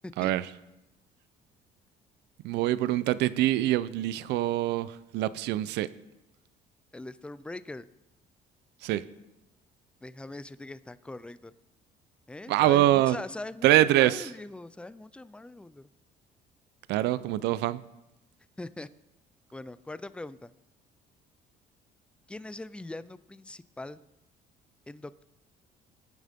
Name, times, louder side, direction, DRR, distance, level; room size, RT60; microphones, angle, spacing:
voice 1, 2.4-5.9 8.8-9.0 12.5-13.2 13.6-14.3 16.9-17.8, right 14 dB, 85° right, 16 dB, 0.6 m, -24 dB
voice 2, 6.9-7.9 10.0-11.5 12.3-15.9 18.6-18.9 19.5-20.5 22.3-24.0 24.9-25.2, left 2 dB, 5° left, 15 dB, 0.5 m, -41 dB
21.5 x 9.4 x 3.6 m, 0.95 s
cardioid pair, 110°, 17 cm